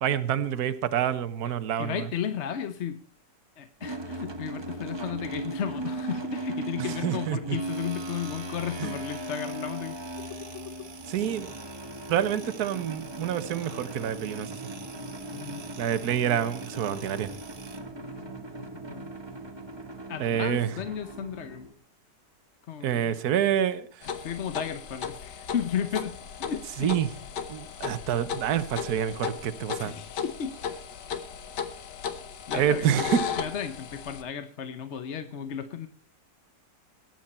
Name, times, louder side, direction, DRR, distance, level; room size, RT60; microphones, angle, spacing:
voice 1, 0.0-2.0 6.8-7.6 8.8-8.9 11.1-11.5 12.1-14.7 15.8-17.3 20.2-20.7 22.8-24.1 26.8-27.1 27.5-29.9 32.5-33.2, right 9 dB, 65° right, 12 dB, 1.4 m, -27 dB
voice 2, 1.8-3.0 3.6-10.9 15.3-15.6 18.0-18.4 18.9-19.1 20.1-21.7 22.7-23.1 24.2-26.9 29.8-30.9 32.5-33.1 33.4-35.9, left 8 dB, 50° left, 10 dB, 1.0 m, -34 dB
sound 1, 3.8-21.7, right 2 dB, 20° right, 0.9 m, -38 dB
sound 2, 7.6-17.8, right 5 dB, 80° right, 2.4 m, -48 dB
sound 3, 24.0-34.2, left 6 dB, 75° left, 1.8 m, -36 dB
20.5 x 9.3 x 4.3 m, 0.42 s
omnidirectional pair, 1.9 m